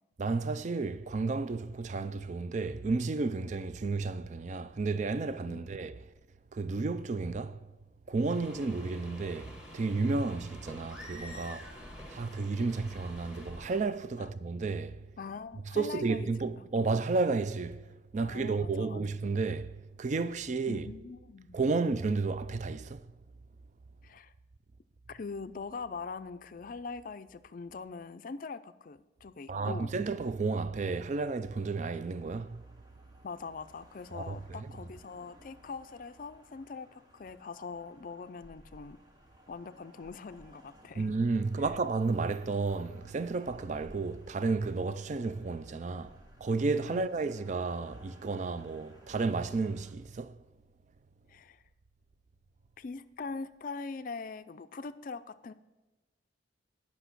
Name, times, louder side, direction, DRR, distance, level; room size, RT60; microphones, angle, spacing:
voice 1, 0.2-6.0 6.5-7.7 8.1-15.1 15.7-17.9 18.1-20.9 21.5-23.1 29.5-32.6 34.1-34.7 41.0-50.4, right 3 dB, 40° right, 0.4 m, -32 dB
sound 1, 8.3-13.8, left 1 dB, 5° right, 1.4 m, -48 dB
voice 2, 15.2-16.5 18.2-19.0 20.7-21.6 24.0-24.3 25.1-29.9 33.2-39.0 39.5-41.1 46.9-47.0 51.3-51.6 52.8-55.5, left 4 dB, 45° left, 0.4 m, -42 dB
sound 2, 31.5-49.9, equal, 20° right, 1.0 m, -59 dB
10.0 x 5.9 x 6.0 m
head